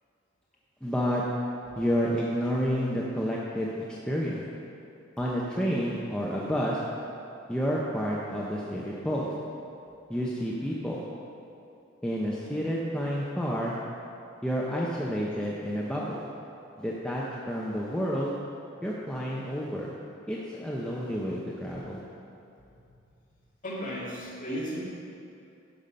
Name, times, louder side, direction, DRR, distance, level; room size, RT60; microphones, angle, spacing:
voice 1, 0.8-1.2 1.8-4.4 5.2-6.8 7.5-9.3 10.1-11.0 12.0-13.8 14.4-16.2 16.8-18.4 18.8-20.0 20.3-22.0, equal, 5° left, -5 dB, 0.7 m, -30 dB
voice 2, 23.6-24.8, equal, 40° left, -6 dB, 2.2 m, -34 dB
12.0 x 5.7 x 5.2 m, 2.7 s
head